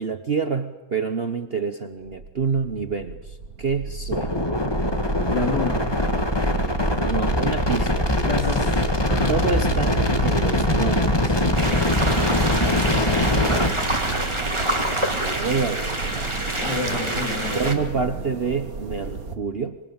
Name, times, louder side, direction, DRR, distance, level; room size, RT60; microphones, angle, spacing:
voice 1, 0.0-4.3 6.9-8.1 9.3-11.4 15.2-16.0 17.5-19.8, right 5 dB, 40° right, 9 dB, 1.2 m, -27 dB
sound 1, 2.1-19.4, right 3 dB, 55° right, 2.3 m, -32 dB
sound 2, 4.1-13.7, left 1 dB, 15° left, 2.0 m, -22 dB
voice 2, 5.2-5.8 8.2-8.7 9.1-9.4 16.6-18.2, left 3 dB, 70° left, 3 dB, 3.8 m, -29 dB
sound 3, 11.5-17.7, right 1 dB, 15° right, 2.7 m, -27 dB
25.0 x 24.0 x 8.9 m, 1.0 s
omnidirectional pair, 1.9 m